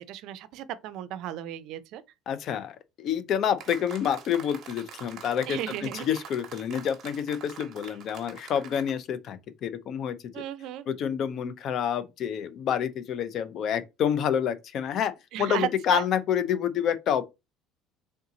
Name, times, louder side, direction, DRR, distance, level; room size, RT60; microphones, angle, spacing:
voice 1, 0.0-2.0 5.5-6.0 10.3-10.9 15.3-16.0, right 11 dB, 65° right, 0.5 m, -35 dB
voice 2, 2.3-10.2 10.9-15.1 15.4-17.2, left 8 dB, 50° left, 0.5 m, -28 dB
sound 1, 3.6-9.0, right 8 dB, 45° right, 1.0 m, -45 dB
3.5 x 2.7 x 3.8 m
cardioid pair, 125°, 0 cm